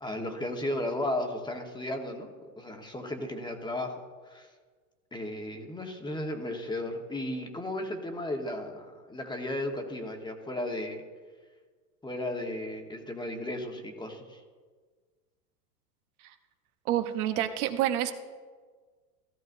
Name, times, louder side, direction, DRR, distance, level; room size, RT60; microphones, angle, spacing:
voice 1, 0.0-4.0 4.2-4.5 5.1-11.0 12.0-14.4, left 1 dB, 10° left, 4 dB, 1.2 m, -35 dB
voice 2, 16.8-18.1, right 12 dB, 65° right, 7 dB, 1.0 m, -28 dB
15.0 x 13.0 x 2.6 m, 1.5 s
hypercardioid pair, 115°, 46 cm